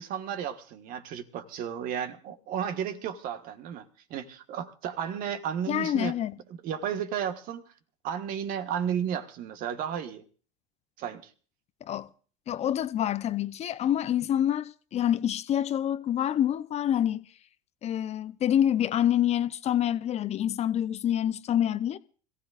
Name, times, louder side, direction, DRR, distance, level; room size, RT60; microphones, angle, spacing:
voice 1, 0.0-6.1 6.6-7.6 8.0-10.2 11.0-11.3, right 8 dB, 55° right, 1.5 m, -33 dB
voice 2, 5.7-6.4 11.8-12.1 12.5-17.2 17.8-22.0, left 10 dB, 40° left, 0.7 m, -27 dB
25.5 x 15.5 x 2.5 m
hypercardioid pair, 85°, 18 cm